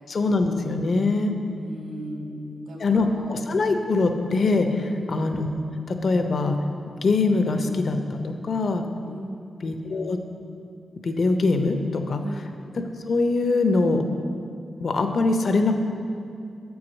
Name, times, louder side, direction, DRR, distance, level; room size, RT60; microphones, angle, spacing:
voice 1, 0.1-1.4 2.8-4.8 5.1-5.5 5.9-6.6 7.0-8.8 9.6-10.2 11.0-12.2 13.1-14.0 14.8-15.8, left 3 dB, 55° left, 6 dB, 0.6 m, -23 dB
voice 2, 1.5-3.4 4.7-5.2 9.0-9.5 12.2-12.5, right 1 dB, 85° right, -2 dB, 1.5 m, -36 dB
8.0 x 4.7 x 6.2 m, 2.4 s
wide cardioid pair, 125°, 0 cm